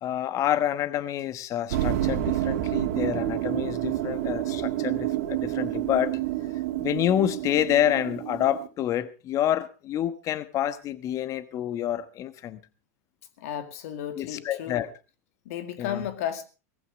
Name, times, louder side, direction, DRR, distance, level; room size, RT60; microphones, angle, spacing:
voice 1, 0.0-6.2 6.8-12.6 14.1-14.9 15.8-16.1, left 11 dB, 40° left, 1.2 m, -28 dB
sound 1, 1.7-8.7, right 13 dB, 70° right, 2.4 m, -29 dB
voice 2, 13.4-14.8 15.5-16.4, left 10 dB, 70° left, 2.1 m, -33 dB
18.5 x 15.0 x 3.6 m
hypercardioid pair, 110°, 9 cm